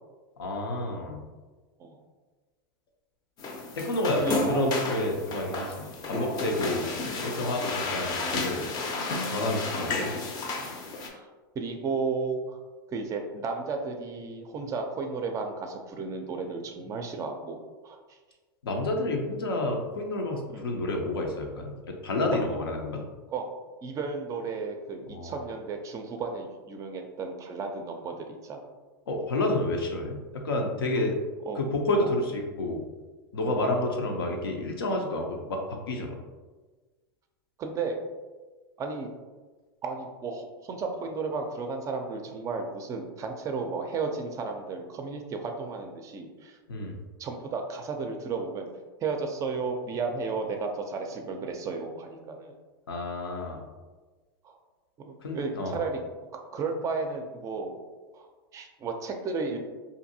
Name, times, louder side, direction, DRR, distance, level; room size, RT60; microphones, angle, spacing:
voice 1, 0.4-1.2 3.7-6.9 7.2-8.7 9.3-10.1 18.6-23.0 25.1-25.4 29.1-31.2 31.6-32.8 33.3-36.2 46.7-47.0 52.9-53.6 55.2-55.7, left 2 dB, 90° left, 1 dB, 0.6 m, -30 dB
sound 1, 3.4-11.1, left 3 dB, 35° left, 0.5 m, -32 dB
voice 2, 4.2-4.9 5.5-5.8 6.6-6.8 7.6-7.8 11.1-11.3 11.6-12.6 12.9-17.6 17.8-18.0 20.5-20.8 23.3-23.5 23.8-28.7 31.5-31.6 32.0-32.1 33.4-33.6 34.9-35.0 37.6-38.0 38.8-39.1 39.8-46.6 47.2-48.7 49.0-52.5 54.4-54.6 55.1-56.0 56.5-57.7 58.1-58.3 58.5-59.6, right 4 dB, 25° right, 4 dB, 0.4 m, -33 dB
2.6 x 2.5 x 2.6 m, 1.3 s
hypercardioid pair, 110°, 12 cm